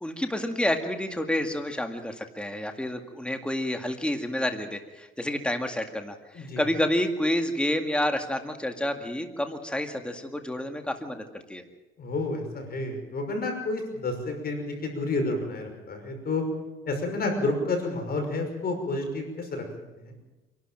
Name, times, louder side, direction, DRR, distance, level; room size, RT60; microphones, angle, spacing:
voice 1, 0.0-11.2 11.5-11.6, left 1 dB, 5° left, 5 dB, 2.0 m, -29 dB
voice 2, 12.0-16.4 16.9-19.6 20.0-20.1, left 2 dB, 50° left, 4 dB, 5.6 m, -30 dB
26.5 x 12.0 x 9.0 m, 1.1 s
cardioid pair, 95°, 21 cm